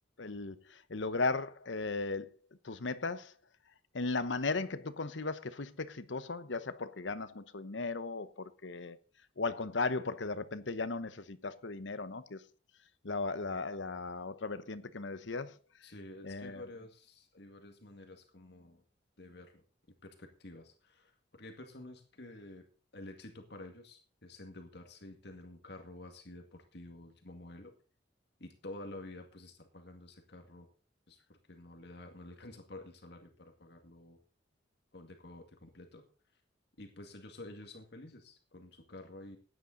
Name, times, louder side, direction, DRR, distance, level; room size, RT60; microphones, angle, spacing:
voice 1, 0.2-2.3 2.6-3.3 3.9-9.0 9.4-12.4 13.0-15.5 16.2-16.6, left 3 dB, 85° left, 1.0 m, -36 dB
voice 2, 15.8-18.8 19.2-19.6 20.0-22.7 22.9-27.7 28.4-30.7 31.1-34.2 34.9-36.0 36.8-39.4, left 2 dB, 65° left, 2.1 m, -50 dB
15.5 x 10.5 x 4.0 m
head